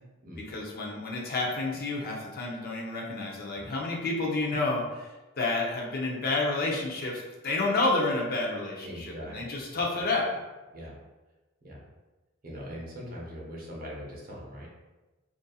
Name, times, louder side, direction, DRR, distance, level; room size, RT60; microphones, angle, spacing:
voice 1, 0.4-5.1 5.4-10.3, left 2 dB, 45° left, -1 dB, 0.5 m, -30 dB
voice 2, 8.8-9.6 10.7-11.0 11.6-11.8 12.4-14.7, equal, 40° right, -4 dB, 0.6 m, -41 dB
2.6 x 2.5 x 2.3 m, 1.2 s
head